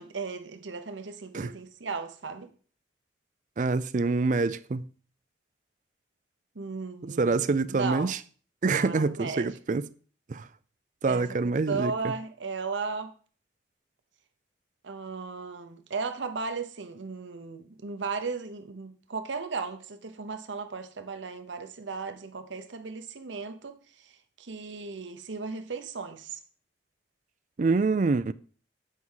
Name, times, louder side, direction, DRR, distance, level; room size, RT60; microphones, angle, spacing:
voice 1, 0.0-2.5 6.5-8.1 8.6-9.5 11.1-13.1 14.8-26.4, right 4 dB, 85° right, 0.9 m, -36 dB
voice 2, 3.6-4.8 7.2-8.2 8.6-9.9 10.3-10.5 11.0-11.9 27.6-28.3, right 3 dB, 40° right, 0.4 m, -26 dB
8.3 x 4.7 x 5.6 m
head